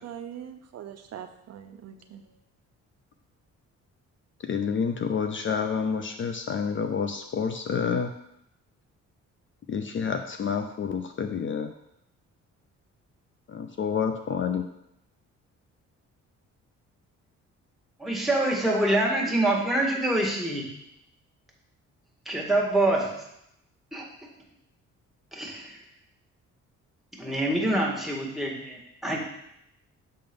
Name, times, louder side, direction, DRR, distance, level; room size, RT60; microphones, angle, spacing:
voice 1, 0.0-2.2, right 9 dB, 55° right, 7 dB, 0.6 m, -42 dB
voice 2, 4.4-8.1 9.7-11.7 13.5-14.6, left 6 dB, 40° left, 7 dB, 0.5 m, -28 dB
voice 3, 18.0-20.6 22.2-23.1 23.9-24.0 25.3-25.7 27.1-29.2, right 1 dB, ahead, -2 dB, 1.7 m, -25 dB
6.7 x 3.8 x 5.2 m, 0.79 s
cardioid pair, 90°, 30 cm